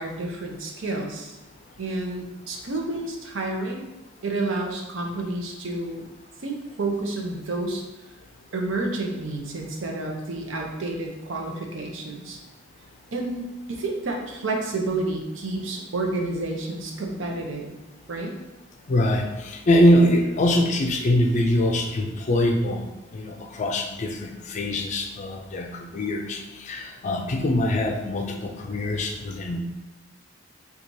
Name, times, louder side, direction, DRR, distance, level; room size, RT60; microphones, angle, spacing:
voice 1, 0.0-1.4 1.8-3.9 4.2-6.1 6.4-7.8 8.5-12.4 13.1-17.7 18.1-18.4, right 2 dB, 75° right, 1 dB, 0.6 m, -30 dB
voice 2, 18.9-22.8 23.1-29.6, left 1 dB, 40° left, 3 dB, 0.4 m, -23 dB
4.5 x 2.4 x 2.6 m, 1.0 s
head